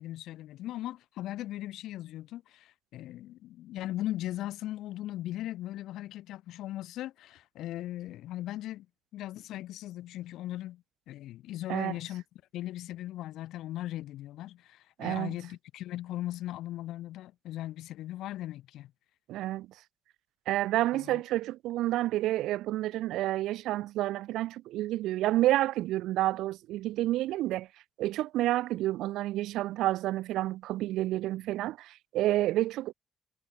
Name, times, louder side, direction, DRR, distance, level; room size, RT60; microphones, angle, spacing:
voice 1, 0.0-8.9 9.1-12.2 12.5-18.9 20.9-21.2, left 14 dB, 85° left, 3.4 m, -38 dB
voice 2, 15.0-15.3 19.3-19.7 20.5-27.7 28.0-32.9, right 15 dB, 90° right, 1.1 m, -29 dB
cardioid pair, 90°, 0 cm